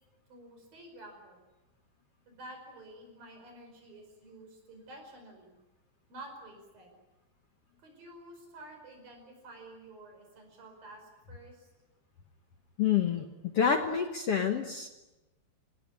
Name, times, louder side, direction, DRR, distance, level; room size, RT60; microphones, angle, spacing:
voice 1, 0.3-1.4 2.3-5.6 6.1-7.0 7.8-11.7, right 1 dB, 65° right, 3 dB, 6.9 m, -50 dB
voice 2, 12.8-14.9, left 7 dB, 60° left, 5 dB, 1.6 m, -28 dB
27.0 x 18.5 x 9.7 m, 1.1 s
omnidirectional pair, 4.4 m